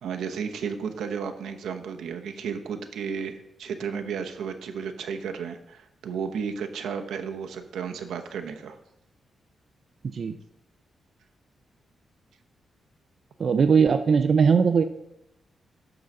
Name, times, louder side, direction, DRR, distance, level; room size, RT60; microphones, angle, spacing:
voice 1, 0.0-8.8, right 6 dB, 90° right, 6 dB, 0.9 m, -33 dB
voice 2, 13.4-14.8, right 6 dB, 50° right, 8 dB, 0.5 m, -20 dB
11.0 x 3.9 x 6.6 m, 0.85 s
cardioid pair, 100°, 0 cm